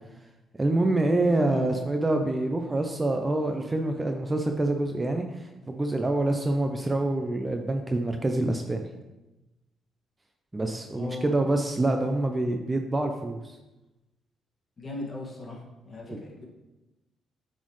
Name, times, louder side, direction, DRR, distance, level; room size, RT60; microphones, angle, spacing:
voice 1, 0.6-5.3 5.7-8.9 10.5-13.5 16.1-16.2, right 2 dB, 20° right, 4 dB, 0.5 m, -26 dB
voice 2, 11.0-11.4 14.8-15.6 15.8-16.5, left 2 dB, 30° left, -3 dB, 1.8 m, -37 dB
7.9 x 4.1 x 3.2 m, 1.0 s
cardioid pair, 90°, 0 cm